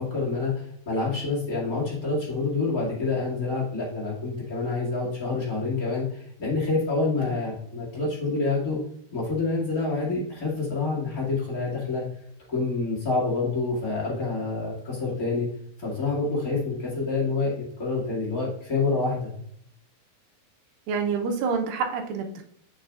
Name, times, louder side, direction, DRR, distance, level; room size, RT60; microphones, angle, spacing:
voice 1, 0.0-8.8 9.1-12.0 12.5-15.5 15.8-19.3, left 3 dB, 30° left, -5 dB, 2.0 m, -27 dB
voice 2, 20.9-22.4, right 5 dB, 80° right, 4 dB, 2.5 m, -27 dB
6.6 x 5.9 x 2.4 m, 0.67 s
omnidirectional pair, 4.2 m